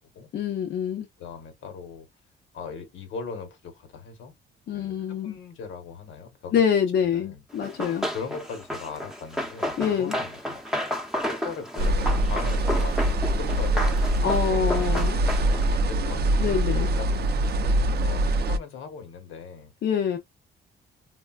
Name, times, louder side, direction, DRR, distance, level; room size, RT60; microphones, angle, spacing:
voice 1, 0.3-1.1 4.7-5.4 6.5-8.1 9.8-10.1 14.2-15.2 16.4-16.9 19.8-20.2, left 7 dB, 60° left, 0.6 m, -25 dB
voice 2, 1.2-2.1 2.5-4.3 4.7-6.6 7.0-7.4 8.1-10.6 11.3-14.9 15.7-16.7 17.0-17.3 18.0-19.7, left 5 dB, 80° left, 1.0 m, -39 dB
Run, 7.6-15.8, equal, ahead, 0.8 m, -32 dB
sound 1, 11.8-18.6, right 1 dB, 55° right, 0.5 m, -24 dB
3.5 x 2.2 x 2.3 m
cardioid pair, 90°, 20 cm